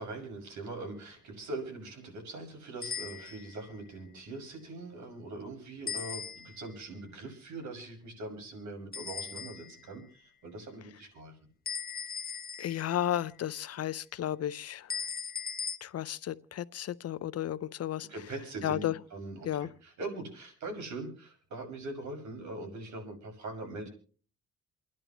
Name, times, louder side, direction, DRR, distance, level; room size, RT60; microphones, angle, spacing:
voice 1, 0.0-11.4 18.1-23.9, right 2 dB, 70° right, 6.4 m, -42 dB
sound 1, 2.8-3.6 5.9-6.7 8.9-9.8 11.7-13.1 14.9-15.8, left 6 dB, 30° left, 1.2 m, -38 dB
voice 2, 12.6-14.9 15.8-18.1 18.6-18.9 19.5-19.7, left 11 dB, 55° left, 0.7 m, -33 dB
29.0 x 11.0 x 3.0 m
cardioid pair, 90°, 30 cm